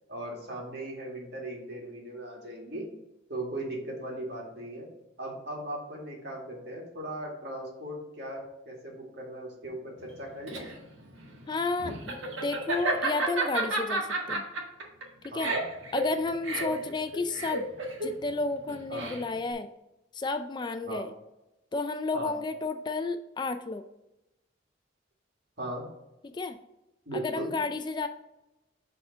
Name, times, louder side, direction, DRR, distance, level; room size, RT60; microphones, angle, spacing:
voice 1, 0.1-2.9 3.3-4.9 5.2-10.7 15.3-15.6 16.5-16.8 18.9-19.2 20.8-21.1 22.1-22.4 25.6-25.8 27.1-27.5, right 1 dB, 60° right, -1 dB, 2.0 m, -38 dB
Laughter, 10.1-19.5, right 2 dB, 85° right, 1.6 m, -32 dB
voice 2, 11.5-14.4 15.3-15.5 15.9-17.6 18.0-19.7 20.1-21.1 21.7-23.8 26.2-26.6 27.1-28.1, left 3 dB, 25° left, 9 dB, 0.3 m, -32 dB
6.8 x 3.7 x 5.5 m, 0.93 s
head